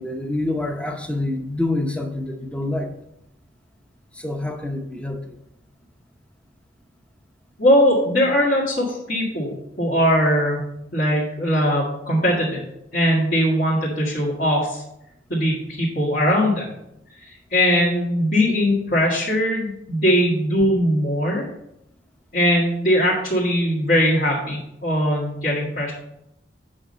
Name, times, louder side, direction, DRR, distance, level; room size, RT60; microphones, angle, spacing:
voice 1, 0.0-2.9 4.1-5.4, left 2 dB, 5° left, 4 dB, 0.8 m, -27 dB
voice 2, 7.6-10.6 10.9-12.6 12.9-14.8 15.3-16.7 17.2-21.4 22.3-25.9, equal, 55° left, -8 dB, 1.9 m, -20 dB
8.7 x 5.5 x 4.3 m, 0.81 s
head